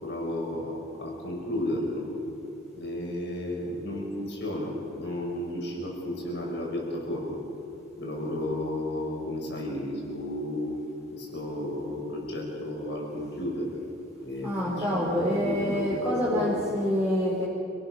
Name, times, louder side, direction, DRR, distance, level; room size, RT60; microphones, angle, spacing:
voice 1, 0.0-2.1 2.7-7.4 8.0-10.7 11.1-13.7 14.2-16.7, left 1 dB, 55° left, -1 dB, 7.0 m, -33 dB
voice 2, 14.4-17.4, equal, 10° right, -8 dB, 4.5 m, -26 dB
29.5 x 19.0 x 6.9 m, 2.9 s
head